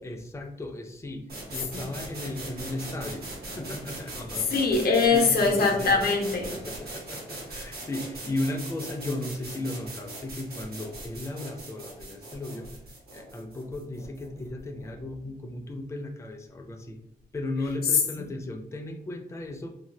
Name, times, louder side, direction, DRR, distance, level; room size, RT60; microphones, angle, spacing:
voice 1, 0.0-1.2 1.5-4.5 5.1-6.0 6.5-12.7 13.1-17.0 17.3-19.7, left 2 dB, 20° left, 3 dB, 0.4 m, -35 dB
sound 1, 1.3-15.0, right 2 dB, 85° right, 1.1 m, -40 dB
voice 2, 4.5-6.5, left 4 dB, 85° left, 1 dB, 0.6 m, -22 dB
2.6 x 2.2 x 3.2 m, 0.76 s
wide cardioid pair, 120°, 16 cm